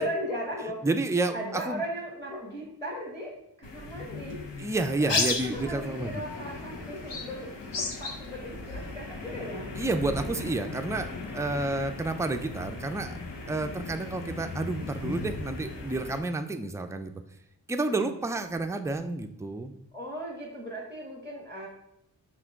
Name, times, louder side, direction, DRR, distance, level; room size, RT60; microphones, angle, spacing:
voice 1, 0.0-0.9 1.3-4.4 4.9-9.7 18.0-18.1 19.9-21.7, equal, 10° left, -2 dB, 1.0 m, -37 dB
voice 2, 0.8-1.8 4.6-6.2 9.8-11.1 11.3-13.1 13.5-17.1 17.7-19.7, right 2 dB, 10° right, 7 dB, 0.3 m, -30 dB
sound 1, 3.6-16.2, left 3 dB, 80° left, 1.0 m, -36 dB
5.7 x 2.5 x 3.5 m, 0.82 s
cardioid pair, 60°, 43 cm